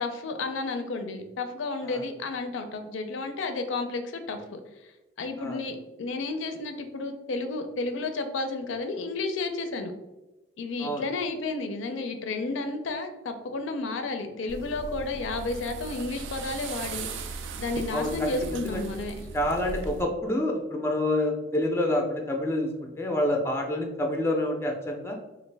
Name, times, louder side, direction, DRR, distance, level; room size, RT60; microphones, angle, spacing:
voice 1, 0.0-4.6 5.2-9.9 10.6-19.3, left 3 dB, 85° left, 7 dB, 0.4 m, -32 dB
sound 1, 14.5-20.0, right 4 dB, 80° right, 0.3 m, -38 dB
voice 2, 17.9-18.8 19.3-25.2, left 1 dB, 15° left, 2 dB, 0.4 m, -28 dB
3.2 x 2.4 x 3.2 m, 1.0 s
head